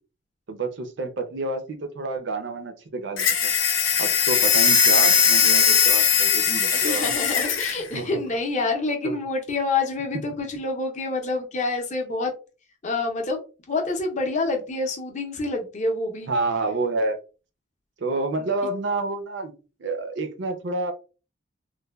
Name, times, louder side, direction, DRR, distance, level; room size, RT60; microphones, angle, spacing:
voice 1, 0.5-3.5 4.0-7.1 7.9-8.2 9.0-9.2 16.3-17.2 18.0-19.5 19.8-20.9, right 2 dB, 60° right, 7 dB, 0.5 m, -29 dB
sound 1, 3.2-7.8, left 6 dB, 75° left, 0.7 m, -19 dB
voice 2, 6.7-12.3 12.8-16.3 18.4-18.5, left 3 dB, 35° left, 3 dB, 0.6 m, -27 dB
3.2 x 2.1 x 2.2 m, 0.33 s
head